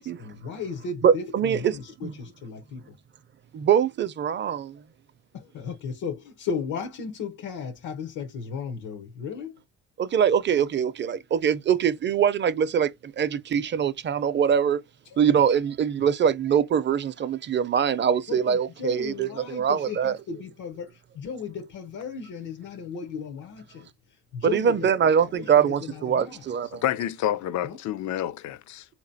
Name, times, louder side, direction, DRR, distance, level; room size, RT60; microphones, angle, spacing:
voice 1, 0.0-3.0 5.3-9.5 15.0-15.2 18.3-24.9 25.2-26.7 27.6-27.8, left 6 dB, 85° left, 0.9 m, -36 dB
voice 2, 1.0-1.8 2.0-2.1 3.5-4.8 10.0-14.8 15.2-20.1 24.4-26.8, right 8 dB, 40° right, 0.5 m, -23 dB
voice 3, 26.7-28.8, left 12 dB, 70° left, 0.5 m, -28 dB
3.8 x 2.9 x 2.7 m
cardioid pair, 90°, 30 cm